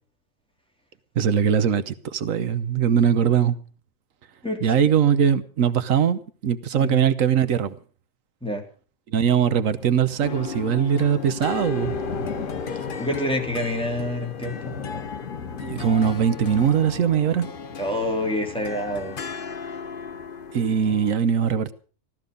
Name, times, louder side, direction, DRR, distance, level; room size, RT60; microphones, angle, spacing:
voice 1, 1.2-3.6 4.6-7.8 9.1-12.0 12.7-12.9 15.6-17.5 20.5-21.7, right 8 dB, 90° right, 1.3 m, -21 dB
sound 1, 9.7-19.4, left 5 dB, 80° left, 1.7 m, -38 dB
sound 2, 10.2-21.1, left 5 dB, 45° left, 1.0 m, -35 dB
voice 2, 13.0-14.7 17.8-19.2, left 1 dB, 5° left, 3.3 m, -27 dB
15.0 x 13.5 x 5.2 m
omnidirectional pair, 1.3 m